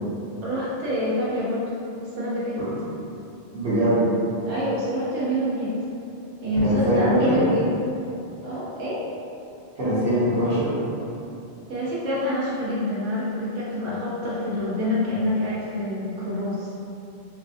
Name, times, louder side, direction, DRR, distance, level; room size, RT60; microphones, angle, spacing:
voice 1, 0.4-1.7 2.2-2.6 4.5-5.7 6.4-7.7 8.4-9.0 11.7-16.8, left 1 dB, 85° right, -8 dB, 1.3 m, -26 dB
voice 2, 3.5-4.0 6.6-7.4 9.8-10.7, equal, 65° right, -10 dB, 1.3 m, -22 dB
4.4 x 2.1 x 2.6 m, 2.8 s
omnidirectional pair, 1.2 m